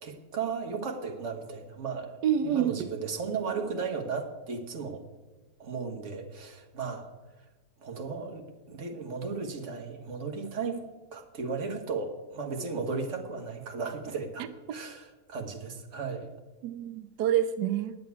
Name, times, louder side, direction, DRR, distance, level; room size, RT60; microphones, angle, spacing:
voice 1, 0.0-2.2 2.4-5.0 5.6-7.1 7.8-10.8 11.1-14.4 14.7-16.3, right 5 dB, 45° right, 4 dB, 1.6 m, -35 dB
voice 2, 2.2-2.9 14.7-14.8 16.6-18.0, right 10 dB, 90° right, 12 dB, 1.2 m, -27 dB
9.5 x 7.8 x 9.4 m, 1.2 s
omnidirectional pair, 1.7 m